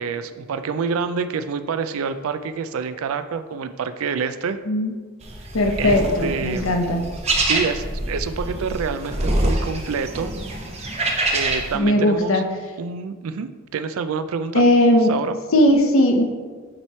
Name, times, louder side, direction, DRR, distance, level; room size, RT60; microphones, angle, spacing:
voice 1, 0.0-4.6 5.8-6.8 7.4-10.3 11.3-12.4 12.8-14.6 15.1-15.3, right 5 dB, 80° right, 10 dB, 0.4 m, -27 dB
sound 1, 5.2-11.8, right 1 dB, 30° right, 0.8 m, -25 dB
voice 2, 5.5-7.1 11.7-12.5 14.5-15.1 15.5-16.2, left 1 dB, 70° left, 4 dB, 0.8 m, -18 dB
8.8 x 3.1 x 4.3 m, 1.5 s
head